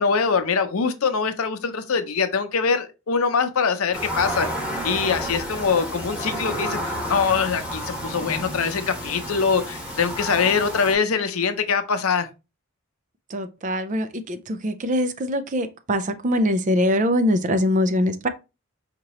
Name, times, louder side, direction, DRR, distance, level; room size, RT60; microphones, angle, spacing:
voice 1, 0.0-4.5 4.8-6.8 7.1-12.3, left 5 dB, 85° left, 0.7 m, -23 dB
sound 1, 3.9-10.9, equal, 5° right, 1.2 m, -31 dB
voice 2, 13.3-18.3, left 1 dB, 35° right, 0.4 m, -23 dB
5.1 x 2.9 x 3.0 m
head